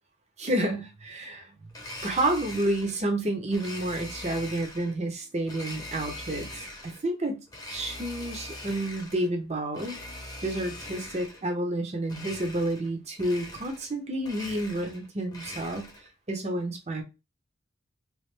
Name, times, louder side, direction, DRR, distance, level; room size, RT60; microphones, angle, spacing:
voice 1, 0.4-1.7 2.0-7.4 7.7-10.0 10.4-17.0, right 1 dB, 30° right, 4 dB, 0.6 m, -30 dB
Domestic sounds home sounds, 1.7-3.0 3.5-4.9 5.5-7.0 7.5-9.3 9.7-11.5 12.1-12.9 13.2-13.9 14.2-16.1, left 1 dB, 20° left, 0.7 m, -42 dB
3.0 x 2.4 x 3.2 m, 0.26 s
head